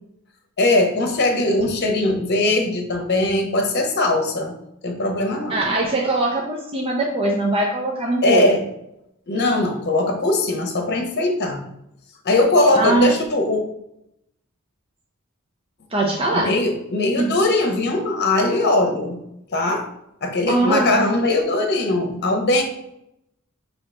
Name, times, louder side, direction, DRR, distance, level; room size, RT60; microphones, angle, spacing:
voice 1, 0.6-4.5 4.8-5.6 8.2-8.6 9.3-11.6 12.2-13.6 16.3-19.2 19.5-19.9 20.2-22.6, left 2 dB, 50° left, 4 dB, 0.8 m, -20 dB
voice 2, 5.5-8.6 12.7-13.1 15.9-16.5 17.2-17.3 20.5-21.0, right 2 dB, 25° right, -1 dB, 0.5 m, -21 dB
5.4 x 2.9 x 3.2 m, 0.80 s
head